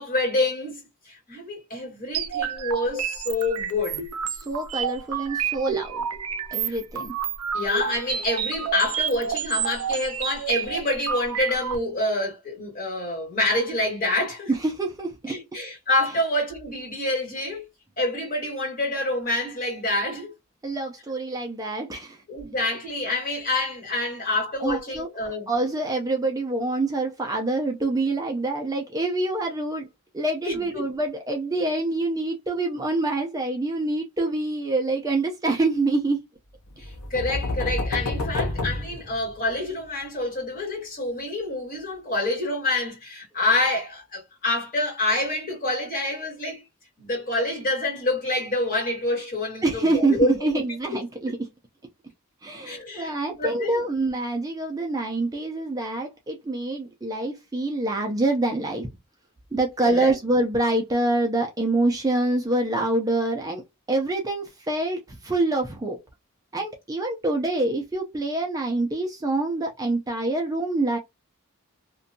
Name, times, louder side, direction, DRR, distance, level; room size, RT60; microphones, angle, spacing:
voice 1, 0.0-4.0 6.5-6.8 7.5-14.5 15.3-17.7 18.0-20.3 22.3-25.5 30.4-30.8 36.8-46.6 47.0-50.6 50.9-51.0 52.6-53.8 59.8-60.1, left 2 dB, 40° left, 1.6 m, -27 dB
sound 1, 2.1-11.8, right 7 dB, 85° right, 0.6 m, -29 dB
voice 2, 4.3-6.0 6.5-7.1 14.5-15.4 20.6-22.2 24.6-29.9 30.1-36.2 49.6-51.5 52.4-58.9 59.5-63.6 63.9-66.0 66.5-71.0, right 2 dB, 15° right, 0.4 m, -26 dB
sound 2, 36.8-39.7, left 2 dB, 75° left, 0.6 m, -29 dB
2.6 x 2.2 x 2.6 m
head